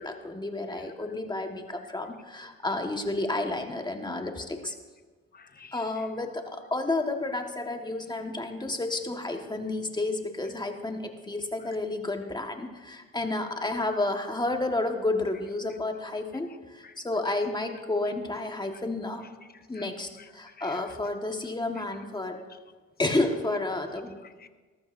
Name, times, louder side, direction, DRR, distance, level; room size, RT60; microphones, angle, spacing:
voice 1, 0.0-4.7 5.7-19.2 19.7-22.4 23.0-24.1, left 2 dB, 15° left, 4 dB, 1.4 m, -31 dB
voice 2, 5.3-6.1 11.6-11.7 16.8-17.0 19.5-19.9 20.2-20.9 21.8-21.9 24.2-24.5, left 6 dB, 30° left, 10 dB, 0.8 m, -51 dB
19.0 x 14.0 x 2.6 m, 1.4 s
cardioid pair, 90°, 30 cm